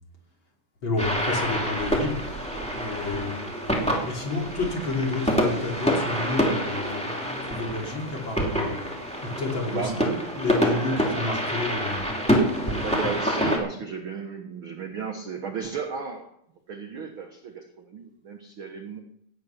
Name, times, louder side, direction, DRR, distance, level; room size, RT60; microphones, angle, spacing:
voice 1, 0.8-3.5 4.0-8.9 9.2-12.0, left 3 dB, 35° left, -1 dB, 3.3 m, -30 dB
sound 1, 1.0-13.6, equal, ahead, 2.2 m, -27 dB
voice 2, 9.7-10.0 12.8-16.3 16.7-19.0, right 5 dB, 60° right, 3 dB, 1.4 m, -34 dB
17.0 x 9.8 x 5.8 m, 0.72 s
omnidirectional pair, 4.2 m